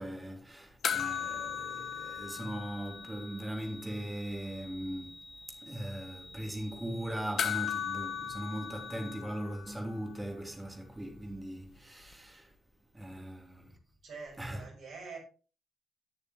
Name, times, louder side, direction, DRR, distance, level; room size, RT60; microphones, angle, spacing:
voice 1, 0.0-5.2 5.6-12.5 12.9-13.7 14.4-14.6, right 1 dB, 15° right, 3.0 m, -39 dB
sound 1, 0.8-3.5 3.8-3.9 7.4-10.0 12.1-12.2, left 9 dB, 55° left, 0.8 m, -36 dB
sound 2, 1.1-9.2, left 1 dB, 5° left, 1.3 m, -51 dB
voice 2, 14.0-15.2, right 4 dB, 60° right, 5.5 m, -46 dB
17.5 x 6.8 x 3.1 m
figure-of-eight pair, 40°, 0 cm